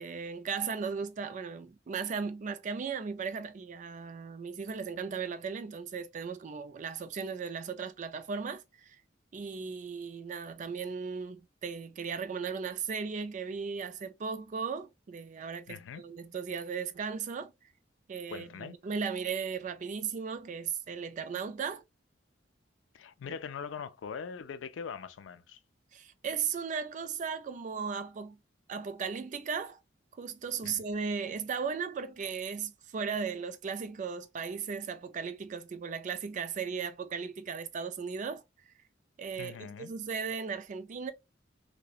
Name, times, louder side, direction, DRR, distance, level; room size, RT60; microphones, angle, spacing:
voice 1, 0.0-9.0 9.3-17.5 18.1-21.8 23.3-23.4 25.9-28.4 28.7-29.8 30.2-38.4 39.2-41.1, right 6 dB, 40° right, 0.3 m, -36 dB
voice 2, 15.7-16.0 18.3-18.7 22.9-25.6 30.6-30.8 39.3-39.9, left 6 dB, 90° left, 0.3 m, -42 dB
2.7 x 2.1 x 2.3 m
head